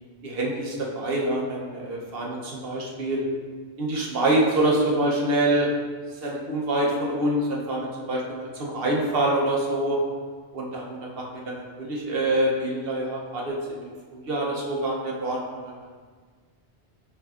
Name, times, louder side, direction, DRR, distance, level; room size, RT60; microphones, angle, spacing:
voice 1, 0.2-3.3 3.8-5.7 6.2-10.0 10.5-10.9 11.1-15.8, right 1 dB, 60° right, -2 dB, 0.9 m, -26 dB
5.8 x 3.4 x 2.4 m, 1.5 s
omnidirectional pair, 1.2 m